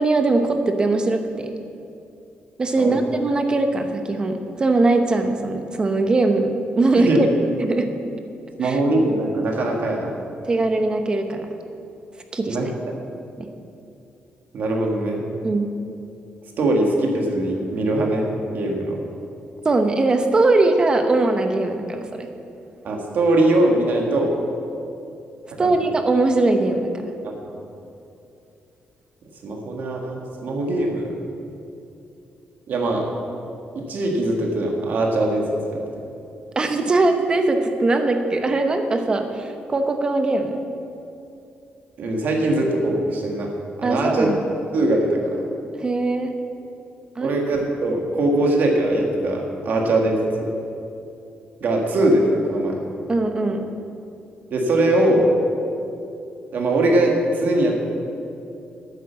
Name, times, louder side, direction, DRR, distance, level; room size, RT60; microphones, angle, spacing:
voice 1, 0.0-1.5 2.6-7.3 7.6-7.9 8.6-8.8 10.4-11.5 12.3-12.7 13.4-13.5 15.4-15.7 19.6-22.3 25.6-27.1 36.6-40.6 43.8-44.4 45.8-46.3 47.2-47.3 53.1-53.7, right 2 dB, 25° right, 6 dB, 0.8 m, -21 dB
voice 2, 8.6-10.1 12.4-12.7 14.5-15.2 16.6-18.3 18.5-19.0 22.8-24.3 25.6-25.7 27.2-27.3 29.4-31.1 32.7-33.0 33.8-35.8 42.0-43.5 43.8-44.3 44.7-45.4 47.2-50.5 51.6-52.8 54.5-55.3 56.5-57.8, right 1 dB, 55° right, 0 dB, 1.8 m, -21 dB
9.3 x 8.5 x 7.2 m, 2.7 s
wide cardioid pair, 165°, 4 cm